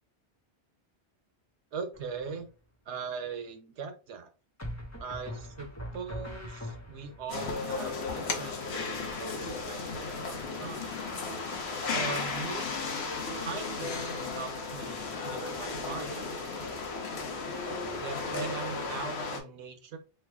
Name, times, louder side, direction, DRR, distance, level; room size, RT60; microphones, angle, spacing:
voice 1, 1.7-2.5 2.9-4.3 5.0-11.0 11.9-12.7 13.4-16.3 18.0-20.0, right 5 dB, 85° right, 8 dB, 1.0 m, -40 dB
sound 1, 1.9-2.5 4.6-7.3, left 1 dB, 15° left, 0.7 m, -41 dB
sound 2, 7.3-19.4, left 4 dB, 70° left, 1.0 m, -35 dB
sound 3, 7.4-16.9, right 1 dB, 20° right, 0.4 m, -53 dB
3.2 x 2.2 x 3.4 m, 0.32 s
omnidirectional pair, 1.1 m